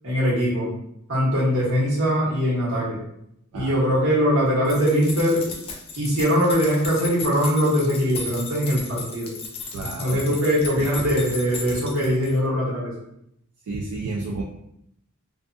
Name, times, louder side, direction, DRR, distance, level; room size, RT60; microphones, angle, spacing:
voice 1, 0.0-0.7 1.1-3.0 3.5-5.6 6.0-9.3 10.0-12.9, equal, 65° right, -7 dB, 1.2 m, -21 dB
voice 2, 3.5-3.9 9.7-10.2 10.7-11.1 13.7-14.4, right 3 dB, 90° right, -1 dB, 0.3 m, -31 dB
sound 1, 4.6-12.4, left 4 dB, 25° left, 0.3 m, -36 dB
2.6 x 2.4 x 2.3 m, 0.76 s
head